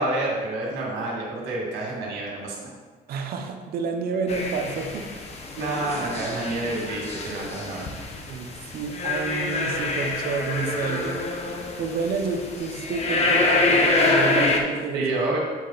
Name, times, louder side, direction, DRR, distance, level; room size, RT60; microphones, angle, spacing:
voice 1, 0.0-2.7 5.6-7.8 14.9-15.4, right 2 dB, 90° right, -2 dB, 1.8 m, -28 dB
voice 2, 3.1-5.1 8.1-11.2 11.8-15.2, right 5 dB, 65° right, 4 dB, 0.8 m, -29 dB
sound 1, 4.3-14.6, left 2 dB, 40° left, 0.9 m, -26 dB
7.5 x 4.2 x 4.0 m, 1.5 s
cardioid pair, 110°, 17 cm